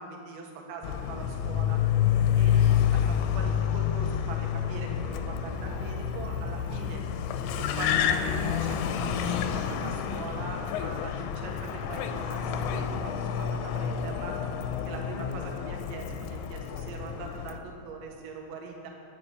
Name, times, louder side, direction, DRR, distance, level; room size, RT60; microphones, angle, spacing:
voice 1, 0.0-1.8 2.4-7.0 7.6-14.4 14.7-18.9, right 4 dB, 75° right, 1 dB, 3.7 m, -41 dB
Car, 0.8-17.6, left 9 dB, 85° left, 2.7 m, -28 dB
11.0 x 9.2 x 7.8 m, 2.4 s
omnidirectional pair, 5.6 m